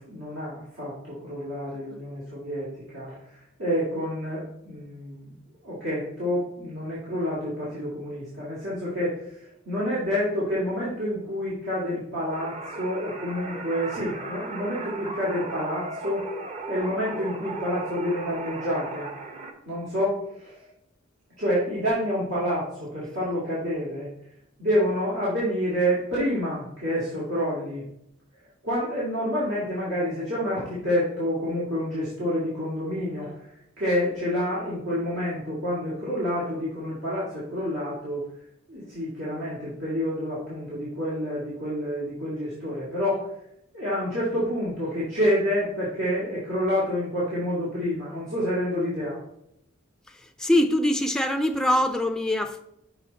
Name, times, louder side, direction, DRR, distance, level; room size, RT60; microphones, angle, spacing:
voice 1, 0.0-2.7 2.9-3.2 3.6-5.4 5.6-9.4 9.7-16.3 16.7-19.1 19.7-20.5 21.4-24.1 24.6-27.8 28.6-33.3 33.8-38.2 38.7-43.3 43.7-49.2, equal, 80° right, 2.2 m, -28 dB
sound 1, 12.3-19.5, right 3 dB, 35° right, 0.7 m, -36 dB
voice 2, 50.4-52.6, left 1 dB, 5° left, 0.3 m, -23 dB
6.3 x 4.8 x 4.0 m
head